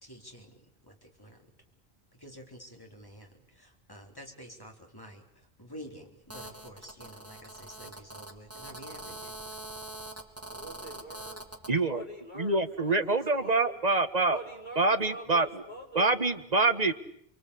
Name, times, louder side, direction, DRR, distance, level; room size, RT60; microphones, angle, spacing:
voice 1, 0.0-1.5 2.1-9.4, equal, 20° left, 2 dB, 4.2 m, -49 dB
Telephone, 6.3-11.7, right 1 dB, 15° right, 2.8 m, -43 dB
voice 2, 10.5-13.8 14.3-16.1, right 1 dB, 50° left, 0 dB, 6.2 m, -45 dB
voice 3, 11.7-12.0 12.3-14.4 14.8-15.6 15.9-16.9, right 3 dB, 40° right, 9 dB, 1.6 m, -26 dB
29.5 x 23.0 x 8.5 m, 0.67 s
omnidirectional pair, 1.1 m